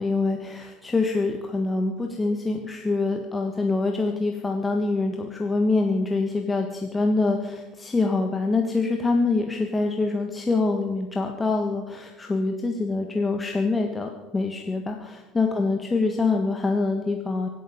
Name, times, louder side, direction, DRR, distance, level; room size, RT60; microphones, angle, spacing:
voice 1, 0.0-17.5, left 3 dB, 20° left, 3 dB, 1.6 m, -25 dB
24.5 x 9.4 x 5.4 m, 1.1 s
figure-of-eight pair, 60°, 0 cm